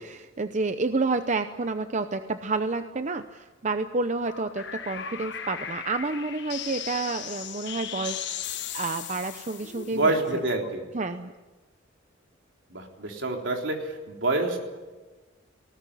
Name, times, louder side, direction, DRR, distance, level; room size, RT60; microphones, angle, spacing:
voice 1, 0.0-8.4 8.7-10.2 10.9-11.3, right 3 dB, 40° right, 9 dB, 0.7 m, -29 dB
sound 1, 4.2-10.7, left 9 dB, 60° left, 1.5 m, -37 dB
voice 2, 9.9-10.8 12.7-14.6, right 2 dB, 70° right, 2 dB, 3.7 m, -27 dB
19.5 x 18.5 x 9.9 m, 1.2 s
head